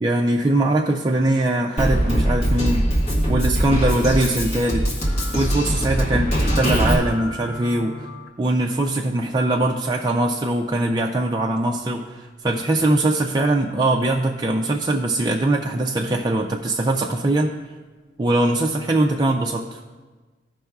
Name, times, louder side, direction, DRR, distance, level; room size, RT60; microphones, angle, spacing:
voice 1, 0.0-2.9 3.3-4.8 5.3-6.3 6.6-8.0 8.4-17.5 18.2-19.8, right 2 dB, 20° right, 1 dB, 0.4 m, -21 dB
Drum kit, 1.8-7.0, equal, 35° left, 1.4 m, -21 dB
sound 1, 5.0-8.3 11.1-11.2, left 1 dB, 85° left, 1.1 m, -39 dB
15.5 x 5.4 x 2.3 m, 1.3 s
head